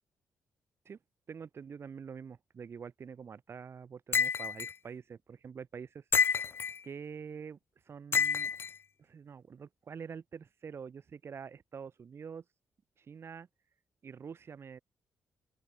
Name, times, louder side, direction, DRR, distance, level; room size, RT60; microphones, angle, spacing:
voice 1, 1.3-6.5 6.8-7.6 7.9-8.5 9.0-12.4 13.0-13.5 14.0-14.8, right 6 dB, 50° right, 5.4 m, -46 dB
sound 1, 4.1-4.7 6.1-6.8 8.1-8.7, left 6 dB, 45° left, 0.9 m, -28 dB
open air
cardioid pair, 105°, 6 cm